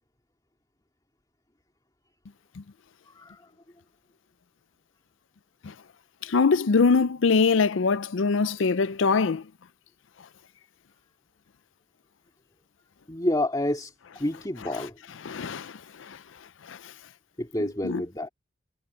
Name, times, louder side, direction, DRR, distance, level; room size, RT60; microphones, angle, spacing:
voice 1, 3.1-3.5 13.1-15.0 17.4-18.3, left 1 dB, 20° left, 2.5 m, -29 dB
voice 2, 6.2-9.4 15.3-16.2 16.7-16.8 17.8-18.0, left 4 dB, 75° left, 0.5 m, -23 dB
head